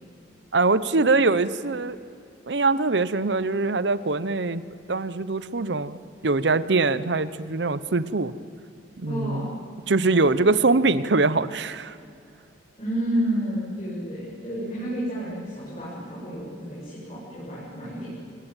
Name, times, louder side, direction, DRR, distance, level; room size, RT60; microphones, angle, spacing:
voice 1, 0.5-2.0 2.5-4.6 4.9-6.0 6.2-8.3 9.0-9.4 9.9-12.0, right 3 dB, 75° right, 15 dB, 0.8 m, -23 dB
voice 2, 9.1-9.5 12.8-18.1, equal, 35° left, -7 dB, 7.5 m, -30 dB
27.0 x 20.0 x 9.1 m, 2.5 s
head